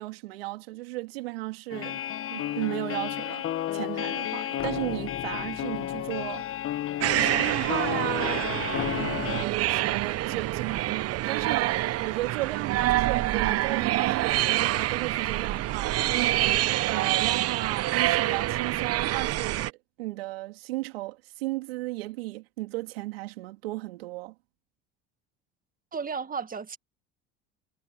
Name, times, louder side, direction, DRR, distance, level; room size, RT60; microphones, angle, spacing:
voice 1, 0.0-2.0 2.3-3.4 3.7-6.5 7.0-24.3, right 20 dB, 85° right, 3.3 m, -35 dB
sound 1, 1.7-9.4, left 11 dB, 45° left, 1.5 m, -32 dB
sound 2, 7.0-19.7, right 15 dB, 55° right, 1.1 m, -26 dB
voice 2, 25.9-26.8, right 5 dB, 30° right, 2.0 m, -33 dB
hypercardioid pair, 75°, 29 cm